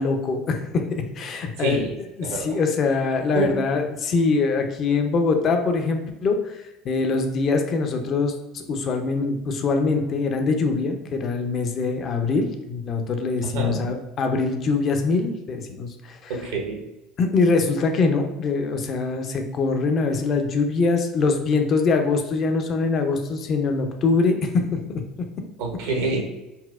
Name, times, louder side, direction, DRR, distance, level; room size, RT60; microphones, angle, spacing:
voice 1, 0.0-1.9 2.2-6.6 6.8-16.3 17.2-25.3, left 4 dB, 45° left, 5 dB, 0.5 m, -23 dB
voice 2, 1.6-1.9 2.2-2.6 3.3-3.5 13.4-13.8 16.3-16.8 25.6-26.2, right 3 dB, 75° right, 1 dB, 0.7 m, -27 dB
4.1 x 2.0 x 2.4 m, 1.0 s
hypercardioid pair, 70°, 0 cm